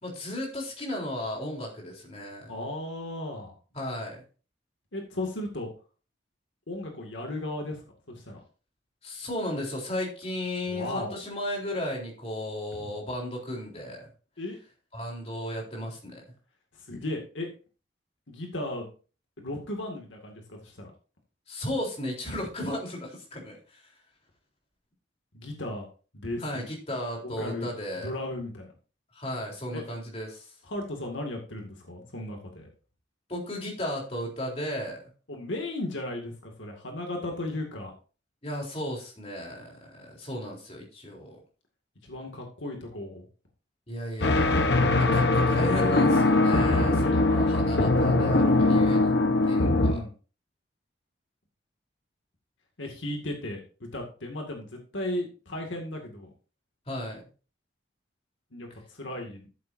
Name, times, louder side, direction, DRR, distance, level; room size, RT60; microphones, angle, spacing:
voice 1, 0.0-2.5 3.7-4.2 9.0-14.1 14.9-16.2 21.5-23.9 26.4-28.1 29.1-30.5 33.3-35.0 38.4-41.3 43.9-44.6 45.0-49.1 49.5-50.0 56.9-57.2, left 1 dB, 30° left, -2 dB, 3.7 m, -35 dB
voice 2, 2.5-3.5 4.9-5.7 6.7-8.4 10.7-11.2 12.8-12.9 14.4-14.6 16.8-17.5 18.3-18.9 19.4-20.9 25.3-25.9 26.1-26.7 27.2-27.7 28.0-28.7 29.7-29.8 30.7-32.7 35.3-37.9 42.0-43.3 47.0-47.2 49.6-50.1 52.8-56.3 58.5-59.5, left 1 dB, 85° left, 2 dB, 2.2 m, -35 dB
sound 1, 44.2-49.9, left 2 dB, 65° left, 1.0 m, -22 dB
14.0 x 7.5 x 2.7 m, 0.36 s
head